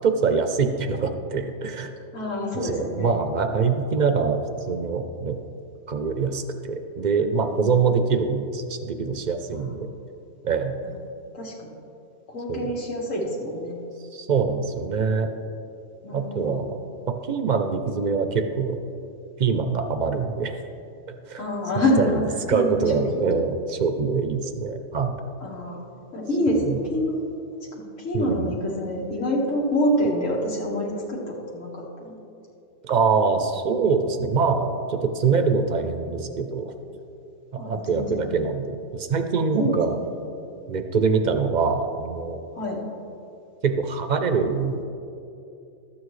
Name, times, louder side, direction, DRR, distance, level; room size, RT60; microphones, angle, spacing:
voice 1, 0.0-1.9 2.6-5.4 5.9-9.9 10.4-10.8 12.5-12.7 14.1-15.3 16.1-16.8 17.3-18.8 19.4-20.6 21.3-21.4 21.8-22.2 22.5-25.2 26.6-26.8 28.1-28.5 32.8-36.7 37.5-40.0 40.7-42.4 43.6-44.8, right 5 dB, 50° right, 7 dB, 0.5 m, -24 dB
voice 2, 2.1-3.1 7.5-7.9 9.5-9.7 11.3-11.7 12.3-13.8 16.0-16.6 21.4-22.2 22.5-23.0 25.4-25.8 26.1-27.2 27.8-32.2 37.6-38.4 39.6-40.2 42.5-42.8, left 1 dB, 90° left, -3 dB, 2.0 m, -27 dB
12.5 x 8.7 x 3.2 m, 2.7 s
omnidirectional pair, 1.3 m